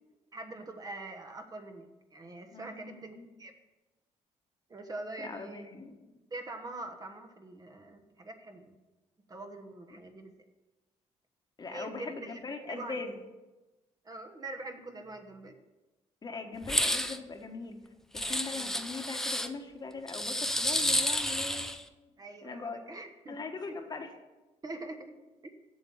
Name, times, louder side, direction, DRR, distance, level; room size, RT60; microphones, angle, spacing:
voice 1, 0.3-3.5 4.7-5.7 6.3-8.8 9.3-10.3 11.7-13.0 14.0-15.5 18.5-18.8 22.2-23.8 24.6-25.5, right 2 dB, 30° right, 5 dB, 1.2 m, -44 dB
voice 2, 2.5-3.3 5.2-6.1 11.6-13.1 16.2-17.8 18.1-21.8 22.4-22.8 23.3-24.1, left 4 dB, 35° left, 5 dB, 1.3 m, -40 dB
sound 1, 16.6-17.2 18.2-19.5 20.1-21.8, left 1 dB, 5° left, 0.6 m, -30 dB
8.0 x 7.0 x 7.1 m, 1.1 s
cardioid pair, 95°, 13 cm